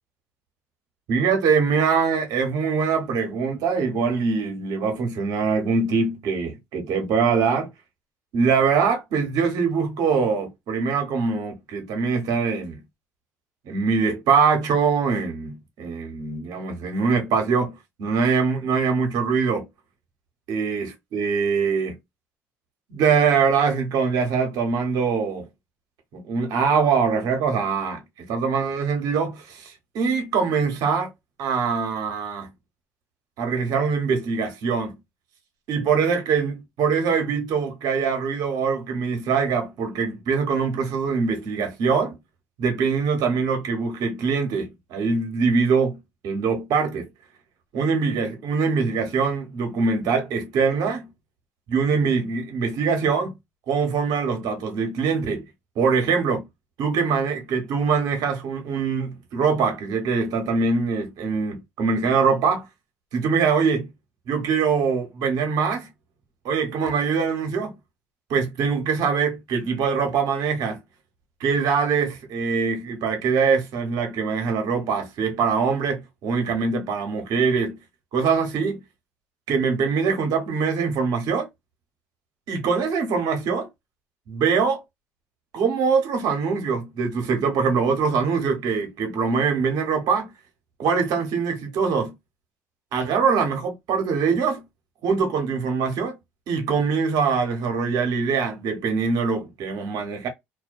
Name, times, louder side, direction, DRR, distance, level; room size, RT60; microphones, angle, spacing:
voice 1, 1.1-7.7 8.3-12.8 13.6-17.7 18.0-19.7 20.5-22.0 22.9-25.5 26.1-28.0 28.3-31.1 31.4-32.5 33.4-35.0 35.7-42.2 42.6-46.0 46.2-47.1 47.7-51.1 51.7-53.3 53.7-55.4 55.8-56.4 56.8-62.6 63.1-63.9 64.3-65.9 66.4-67.7 68.3-70.8 71.4-77.7 78.1-78.8 79.5-81.5 82.5-83.7 84.3-84.8 85.5-90.3 90.8-92.1 92.9-94.6 95.0-96.2 96.5-100.3, right 5 dB, 65° right, 0.9 m, -23 dB
2.3 x 2.1 x 2.5 m
hypercardioid pair, 65°, 7 cm